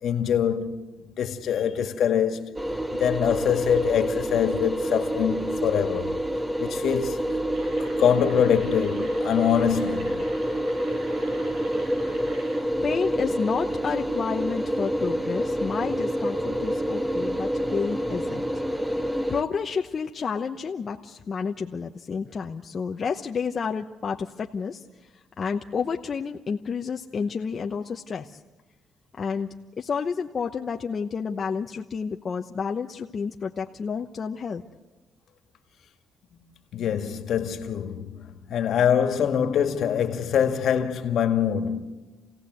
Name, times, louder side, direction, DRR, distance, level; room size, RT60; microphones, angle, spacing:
voice 1, 0.0-0.8 1.2-2.5 2.9-6.1 6.6-7.4 8.0-10.1 36.7-41.8, left 8 dB, 70° left, 2.0 m, -24 dB
sound 1, 2.6-19.4, equal, 10° right, 1.6 m, -28 dB
sound 2, 7.5-12.6, right 2 dB, 80° right, 7.6 m, -46 dB
voice 2, 12.8-18.4 19.3-24.8 25.4-28.4 29.2-29.5 29.8-34.6, left 5 dB, 45° left, 1.0 m, -30 dB
28.5 x 17.0 x 8.0 m
cardioid pair, 90°, 0 cm